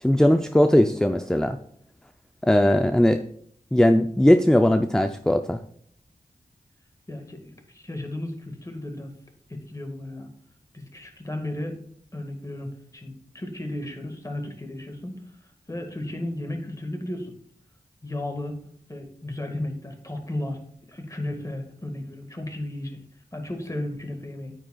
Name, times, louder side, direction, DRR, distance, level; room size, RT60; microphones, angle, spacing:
voice 1, 0.0-1.6 2.4-3.2 3.7-5.6, left 1 dB, 5° left, 8 dB, 0.4 m, -19 dB
voice 2, 7.1-9.1 9.5-10.3 10.7-11.8 12.1-15.1 15.7-17.4 18.0-20.6 20.9-23.0 23.3-24.5, left 1 dB, 20° left, 4 dB, 1.7 m, -34 dB
8.9 x 8.8 x 2.3 m, 0.62 s
wide cardioid pair, 60°, 15 cm